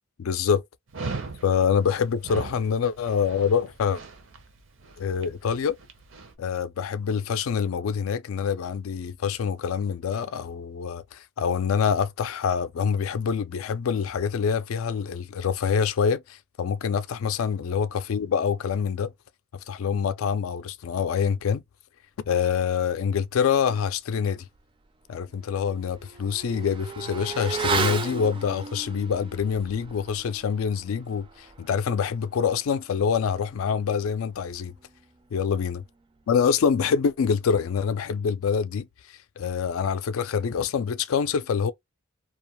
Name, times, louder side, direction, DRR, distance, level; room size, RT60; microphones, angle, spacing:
voice 1, 0.2-0.6 1.4-4.0 5.0-5.8 6.4-19.1 19.7-21.6 22.3-24.4 25.1-34.7 35.3-35.8 36.3-38.9 39.4-41.7, left 6 dB, 90° left, 0.4 m, -26 dB
Dog, 0.9-6.3, right 3 dB, 65° right, 0.7 m, -39 dB
Motorcycle / Accelerating revving vroom, 24.5-24.6 25.0-35.0 35.3-35.4, right 5 dB, 25° right, 0.3 m, -35 dB
2.4 x 2.2 x 2.9 m
head